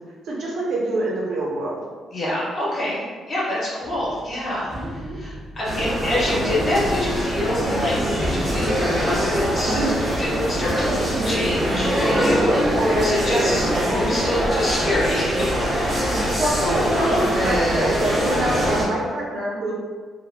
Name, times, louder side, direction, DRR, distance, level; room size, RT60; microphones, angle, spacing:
voice 1, 0.3-1.8 4.7-5.2 12.4-12.6 16.4-19.7, right 1 dB, 65° right, -4 dB, 0.6 m, -26 dB
voice 2, 2.1-9.9 10.2-10.8 11.2-13.7 14.0-15.5 15.8-16.0, left 1 dB, 40° left, -8 dB, 1.1 m, -26 dB
sound 1, 3.8-12.5, equal, 15° right, 0.4 m, -37 dB
sound 2, 5.6-18.9, equal, 30° right, 0.9 m, -22 dB
2.9 x 2.1 x 2.2 m, 1.5 s
cardioid pair, 90°, 0 cm